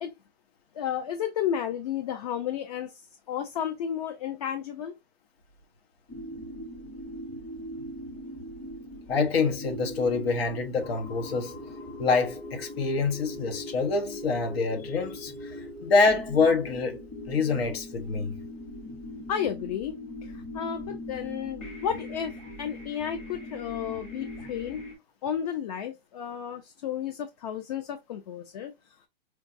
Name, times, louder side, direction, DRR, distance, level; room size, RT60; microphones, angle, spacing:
voice 1, 0.7-4.9 19.3-20.0 20.2-22.3 22.6-24.8 25.2-28.7, left 9 dB, 40° left, 0.4 m, -32 dB
sound 1, 6.1-24.9, left 1 dB, 20° left, 0.9 m, -40 dB
voice 2, 9.1-11.6 12.0-17.0 17.3-18.4, left 4 dB, 80° left, 1.0 m, -26 dB
4.6 x 2.3 x 2.5 m
hypercardioid pair, 165°, 30 cm